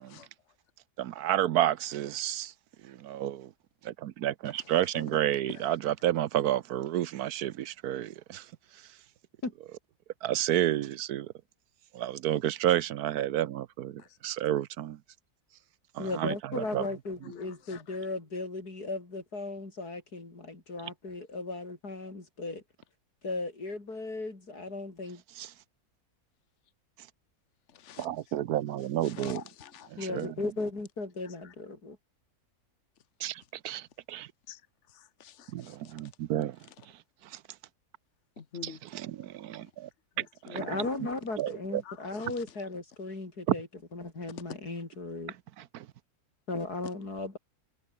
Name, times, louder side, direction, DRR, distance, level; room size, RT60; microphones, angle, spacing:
voice 1, 1.0-2.5 2.8-3.5 3.8-8.4 10.2-11.3 11.9-15.0 15.9-16.8 25.4-25.5 28.0-29.4 29.9-30.3 33.2-34.3 35.5-36.6 38.6-39.9 40.2-40.8 41.4-41.8 43.5-43.6 45.7-45.9, right 12 dB, 80° right, 1.2 m, -30 dB
voice 2, 16.0-22.6 23.2-25.2 30.0-32.0 40.5-45.3 46.5-47.4, left 3 dB, 85° left, 5.6 m, -36 dB
voice 3, 17.2-18.0 27.7-28.1 29.0-29.9 34.5-34.6 34.9-35.9 38.4-38.8 40.2-40.7 41.8-42.3, left 8 dB, 50° left, 1.6 m, -47 dB
omnidirectional pair, 1.6 m